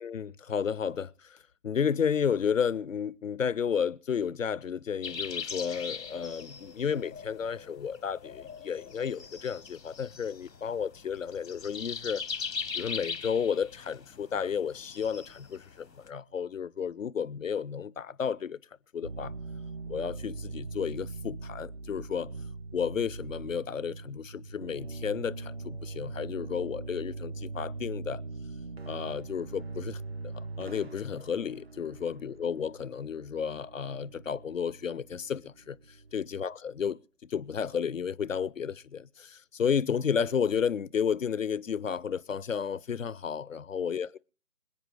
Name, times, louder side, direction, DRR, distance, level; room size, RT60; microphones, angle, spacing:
voice 1, 0.0-1.4 1.6-12.2 12.7-18.6 18.9-19.3 19.9-22.3 22.7-28.2 28.9-44.2, left 7 dB, 55° left, 0.5 m, -32 dB
sound 1, 5.0-16.1, left 5 dB, 85° left, 1.1 m, -41 dB
sound 2, 19.0-36.4, right 3 dB, 40° right, 0.6 m, -42 dB
26.5 x 8.8 x 3.2 m
figure-of-eight pair, 160°, 48 cm